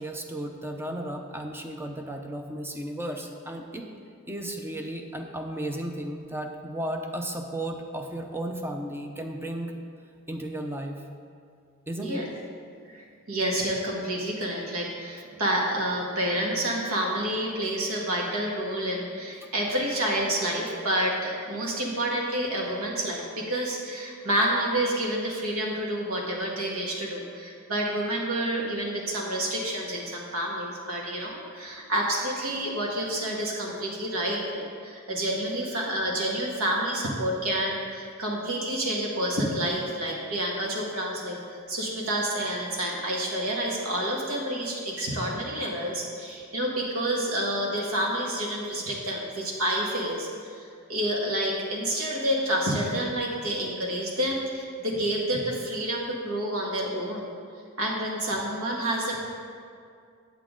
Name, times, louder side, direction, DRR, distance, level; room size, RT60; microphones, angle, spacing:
voice 1, 0.0-3.9 4.3-9.7 10.3-11.0 11.9-12.2, right 1 dB, 10° right, 3 dB, 0.6 m, -34 dB
voice 2, 12.9-57.3 57.8-59.2, right 1 dB, 80° right, -2 dB, 1.7 m, -29 dB
8.4 x 8.1 x 3.8 m, 2.3 s
head